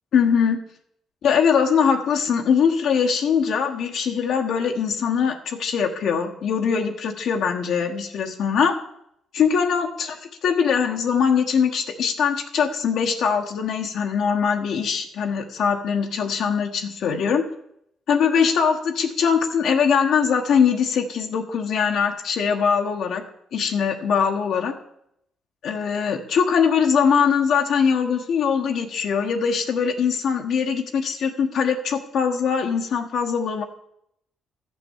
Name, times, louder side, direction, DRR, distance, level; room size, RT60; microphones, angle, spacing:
voice 1, 0.1-0.6 1.2-8.8 9.3-10.2 10.4-17.4 18.1-23.2 23.5-24.7 25.6-33.6, left 6 dB, 70° left, 3 dB, 1.3 m, -22 dB
13.0 x 6.9 x 7.2 m, 0.74 s
cardioid pair, 90°, 0 cm